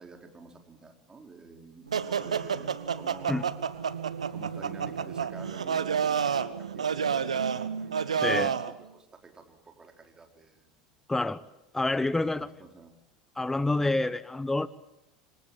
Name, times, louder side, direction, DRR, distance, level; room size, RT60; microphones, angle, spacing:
voice 1, 0.0-3.6 4.3-8.6 8.9-10.9 12.1-12.9 13.8-14.0, right 4 dB, 20° right, 4 dB, 4.6 m, -50 dB
sound 1, 1.9-8.7, right 7 dB, 85° right, 1.1 m, -30 dB
voice 2, 8.2-8.5 11.1-11.4 11.7-12.5 13.4-14.7, left 2 dB, 10° left, 17 dB, 1.3 m, -27 dB
27.5 x 25.0 x 7.5 m, 0.86 s
hypercardioid pair, 80°, 3 cm